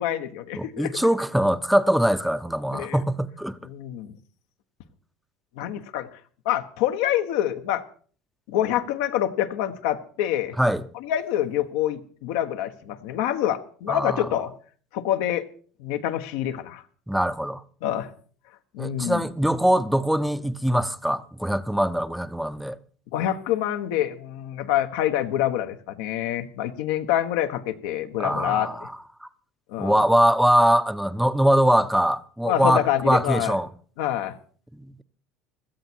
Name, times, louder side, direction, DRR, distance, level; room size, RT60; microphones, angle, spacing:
voice 1, 0.0-0.9 2.7-3.0 3.6-4.1 5.6-6.1 6.4-7.8 8.5-10.6 11.0-14.5 14.9-15.5 15.8-16.8 17.8-18.1 18.7-19.2 23.1-28.7 29.7-30.0 32.4-33.6 34.0-34.4, left 12 dB, 80° left, 1.3 m, -26 dB
voice 2, 0.5-3.6 10.6-10.9 13.9-14.3 17.1-17.6 18.8-22.8 28.2-28.9 29.2-29.3 29.8-33.7, equal, ahead, 0.8 m, -22 dB
16.5 x 13.0 x 4.6 m
supercardioid pair, 110°, 0 cm